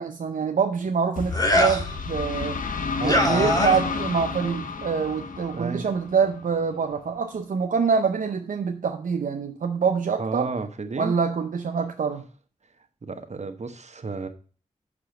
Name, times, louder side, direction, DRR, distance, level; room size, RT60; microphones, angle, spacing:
voice 1, 0.0-2.6 3.0-10.5 11.0-12.2, right 6 dB, 75° right, 4 dB, 0.6 m, -25 dB
sound 1, 1.2-6.8, left 4 dB, 80° left, 0.8 m, -31 dB
sound 2, 1.3-1.9 3.0-4.0, left 1 dB, 25° left, 1.8 m, -22 dB
voice 2, 3.0-3.6 5.5-5.8 10.2-11.1 13.0-14.3, right 4 dB, 55° right, 8 dB, 1.0 m, -31 dB
5.9 x 4.9 x 5.0 m, 0.39 s
cardioid pair, 40°, 14 cm